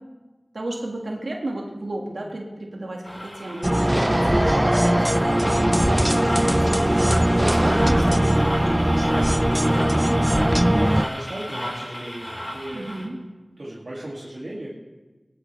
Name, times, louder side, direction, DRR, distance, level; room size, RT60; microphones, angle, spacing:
voice 1, 0.5-7.1 7.3-9.1 12.7-13.2, right 1 dB, 90° right, 0 dB, 2.0 m, -33 dB
sound 1, 3.0-13.1, equal, 25° left, 4.5 m, -34 dB
sound 2, 3.6-11.0, right 1 dB, 15° right, 0.4 m, -20 dB
voice 2, 10.2-12.9 13.6-14.7, right 1 dB, 65° right, -7 dB, 2.6 m, -37 dB
21.0 x 12.0 x 3.4 m, 1.2 s
wide cardioid pair, 45°, 0 cm